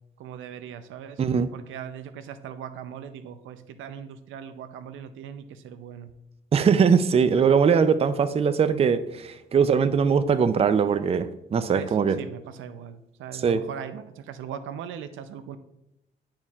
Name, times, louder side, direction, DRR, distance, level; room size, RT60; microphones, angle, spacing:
voice 1, 0.2-1.2 1.5-6.1 11.7-15.6, right 8 dB, 80° right, 11 dB, 0.5 m, -39 dB
voice 2, 1.2-1.5 6.5-12.2 13.4-13.6, right 6 dB, 30° right, 12 dB, 0.4 m, -21 dB
10.5 x 4.4 x 2.4 m, 0.87 s
cardioid pair, 90°, 20 cm